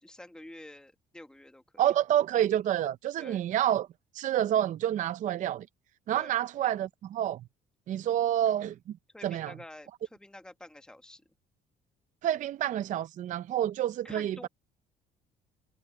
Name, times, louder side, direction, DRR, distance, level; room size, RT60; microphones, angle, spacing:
voice 1, 0.0-1.9 3.2-3.4 6.1-6.4 9.1-11.2 14.0-14.5, left 1 dB, 5° left, 1.3 m, -49 dB
voice 2, 1.8-3.9 4.1-5.7 6.1-7.4 7.9-8.7 9.2-9.5 12.2-14.5, right 11 dB, 50° right, 0.4 m, -28 dB
cardioid pair, 110°, 17 cm